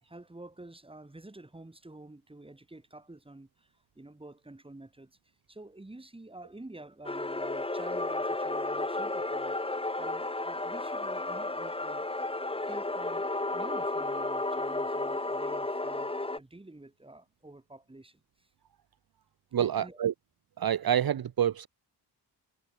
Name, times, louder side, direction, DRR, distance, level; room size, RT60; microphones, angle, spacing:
voice 1, 0.0-5.2 5.5-12.1 12.4-18.5 19.6-20.0, right 2 dB, 15° right, 4.3 m, -49 dB
sound 1, 7.0-16.4, left 2 dB, 15° left, 1.8 m, -33 dB
voice 2, 19.5-20.1 20.6-21.7, right 9 dB, 60° right, 0.9 m, -27 dB
wide cardioid pair, 160°, 41 cm